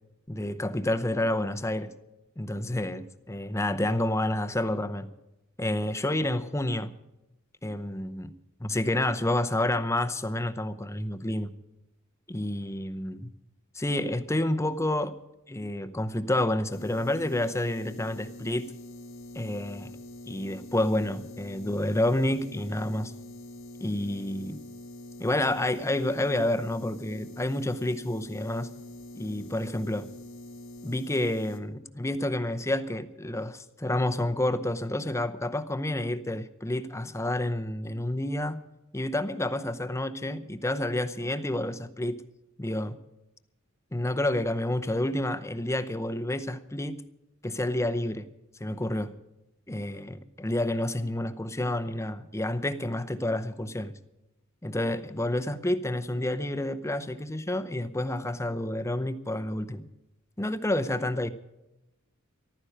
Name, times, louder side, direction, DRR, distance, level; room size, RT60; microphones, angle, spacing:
voice 1, 0.3-1.9 2.4-5.1 5.6-6.9 7.6-8.3 8.6-11.5 12.3-13.3 13.7-15.2 15.5-18.7 19.3-19.9 20.3-23.1 23.8-24.7 25.2-28.7 29.1-30.1 30.8-38.6 38.9-42.2 42.6-43.0 43.9-47.0 47.4-48.3 48.6-49.2 49.7-54.0 54.6-59.9 60.4-61.3, left 1 dB, 15° left, 0.7 m, -29 dB
sound 1, 16.7-31.6, left 1 dB, 70° left, 1.8 m, -44 dB
14.5 x 12.5 x 6.5 m
head